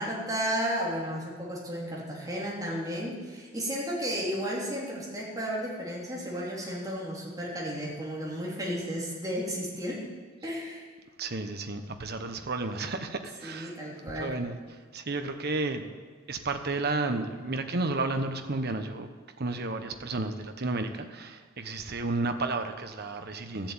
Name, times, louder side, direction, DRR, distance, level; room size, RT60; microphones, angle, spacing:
voice 1, 0.0-10.1 10.4-10.8 13.4-14.3, equal, 20° right, -5 dB, 3.4 m, -33 dB
voice 2, 11.2-13.7 14.2-14.6 14.9-15.9 16.3-19.1 19.4-23.7, right 3 dB, 50° right, 7 dB, 1.1 m, -32 dB
14.0 x 7.5 x 8.9 m, 1.5 s
head